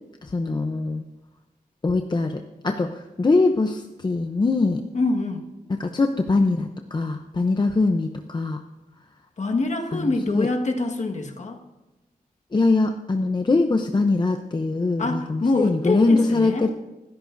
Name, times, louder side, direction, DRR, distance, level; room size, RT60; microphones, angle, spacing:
voice 1, 0.2-1.0 1.8-4.8 5.8-8.6 9.9-10.5 12.5-16.7, left 3 dB, 30° left, 5 dB, 0.6 m, -22 dB
voice 2, 4.9-5.4 9.4-11.6 15.0-16.7, left 2 dB, 50° left, 3 dB, 1.6 m, -25 dB
25.5 x 13.5 x 2.6 m, 1.1 s
wide cardioid pair, 135°, 15 cm